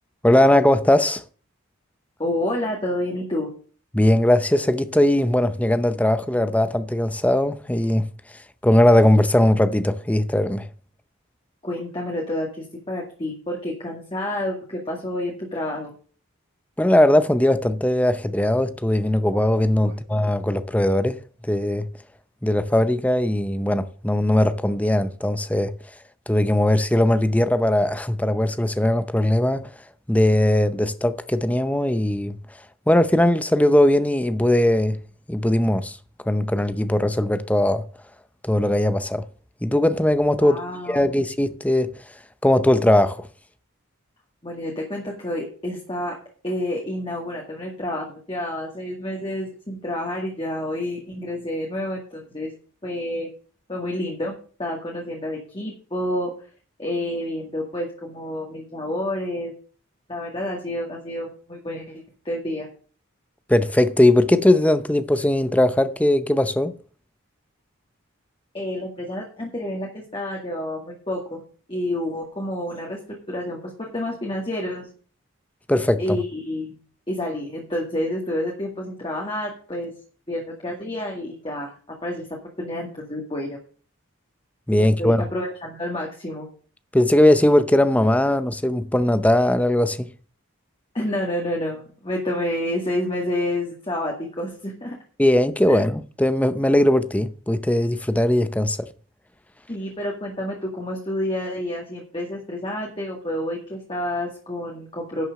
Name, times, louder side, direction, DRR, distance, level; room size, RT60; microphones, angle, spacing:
voice 1, 0.2-1.2 3.9-8.0 8.6-10.7 16.8-21.9 22.4-25.7 26.3-29.7 30.1-32.4 32.9-35.0 35.3-36.0 36.3-37.8 38.4-39.2 39.6-40.6 40.9-41.9 42.4-43.3 63.5-66.7 75.7-76.2 84.7-85.2 86.9-90.1 95.2-98.9, left 1 dB, 5° left, 0.6 m, -19 dB
voice 2, 2.2-3.5 11.6-15.9 19.8-20.0 40.4-41.2 44.4-46.1 46.4-52.5 52.8-53.3 53.7-56.3 56.8-59.5 60.1-62.7 68.5-73.0 73.3-74.9 76.0-76.8 77.1-79.9 80.3-81.7 82.0-82.3 82.6-83.6 84.8-86.5 90.9-95.0 95.7-95.8 99.7-105.2, left 1 dB, 25° left, 2.1 m, -29 dB
11.0 x 6.2 x 6.5 m
head